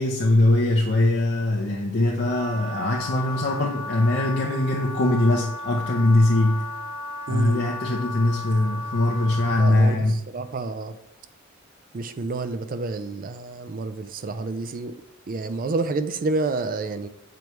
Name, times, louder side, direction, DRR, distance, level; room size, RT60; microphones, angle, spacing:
voice 1, 0.0-6.7 7.3-10.2, left 2 dB, 50° left, 0 dB, 0.6 m, -21 dB
Wind instrument woodwind instrument, 2.3-9.8, left 2 dB, 70° right, 1.2 m, -35 dB
voice 2, 7.3-7.6 9.6-10.9 11.9-15.0 15.3-17.1, right 3 dB, 40° right, 11 dB, 0.4 m, -29 dB
6.9 x 4.6 x 3.1 m, 0.84 s
head